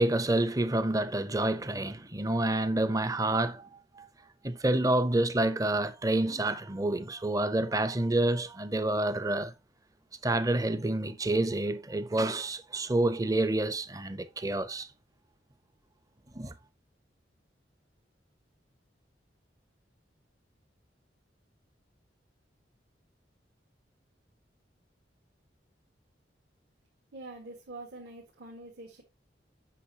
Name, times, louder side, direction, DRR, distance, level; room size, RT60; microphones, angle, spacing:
voice 1, 0.0-3.7 3.9-4.1 4.4-9.5 10.2-14.9 16.3-16.5, right 1 dB, 20° right, 0.6 m, -28 dB
voice 2, 27.1-29.0, right 2 dB, 70° right, 1.6 m, -45 dB
8.4 x 6.0 x 2.8 m
head